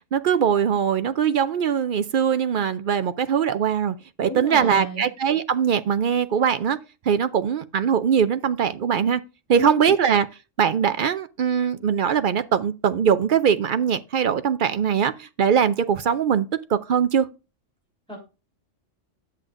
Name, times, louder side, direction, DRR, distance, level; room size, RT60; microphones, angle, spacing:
voice 1, 0.1-6.8 7.0-9.2 9.5-10.3 10.6-17.3, right 7 dB, 60° right, 0.5 m, -21 dB
voice 2, 4.2-5.1 9.5-10.0 18.1-18.2, right 1 dB, 5° left, 3.4 m, -32 dB
10.5 x 7.9 x 2.5 m
omnidirectional pair, 1.3 m